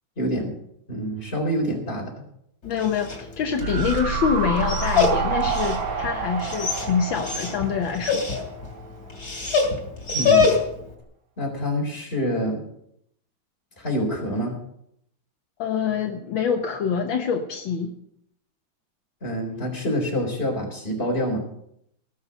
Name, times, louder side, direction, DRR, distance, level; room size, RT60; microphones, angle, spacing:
voice 1, 0.2-0.5 0.9-2.1 10.1-10.5 11.4-12.6 13.8-14.6 19.2-21.4, equal, 25° left, 1 dB, 4.3 m, -26 dB
voice 2, 2.6-8.2 15.6-17.9, left 6 dB, 70° left, 4 dB, 1.8 m, -25 dB
Dog, 2.6-10.9, left 5 dB, 50° left, 3.4 m, -26 dB
sound 1, 3.6-8.9 9.1-9.2, right 5 dB, 70° right, 2.4 m, -28 dB
19.0 x 6.8 x 7.8 m, 0.73 s
omnidirectional pair, 2.2 m